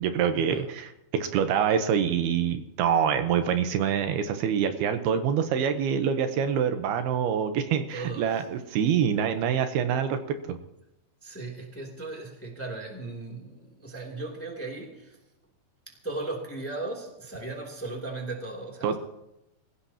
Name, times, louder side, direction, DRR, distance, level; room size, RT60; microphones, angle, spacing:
voice 1, 0.0-10.6 18.8-19.0, right 8 dB, 80° right, 8 dB, 2.9 m, -26 dB
voice 2, 7.9-8.3 11.2-15.2 15.9-19.0, right 2 dB, 5° left, 0 dB, 2.2 m, -37 dB
25.5 x 16.0 x 3.0 m, 0.90 s
omnidirectional pair, 4.6 m